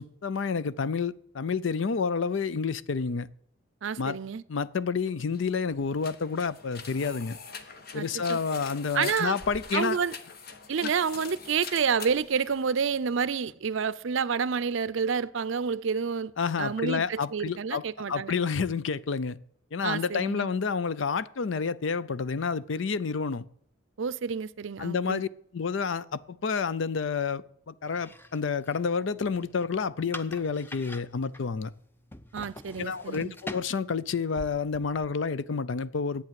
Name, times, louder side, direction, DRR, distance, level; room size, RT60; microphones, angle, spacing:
voice 1, 0.0-3.3 4.0-4.2 4.5-7.4 7.9-10.0 10.8-10.9 16.4-19.4 19.7-23.4 24.8-25.3 25.5-31.7 32.8-36.2, left 5 dB, 65° left, 0.5 m, -29 dB
voice 2, 3.8-4.4 7.9-8.4 8.9-9.4 9.7-10.1 10.7-16.3 16.6-18.3 19.8-20.5 24.0-25.2 32.3-33.3, right 6 dB, 65° right, 0.5 m, -29 dB
sound 1, 5.2-13.1, left 5 dB, 50° left, 1.1 m, -44 dB
sound 2, 27.9-35.3, left 1 dB, 10° left, 0.5 m, -46 dB
10.5 x 8.5 x 7.5 m
head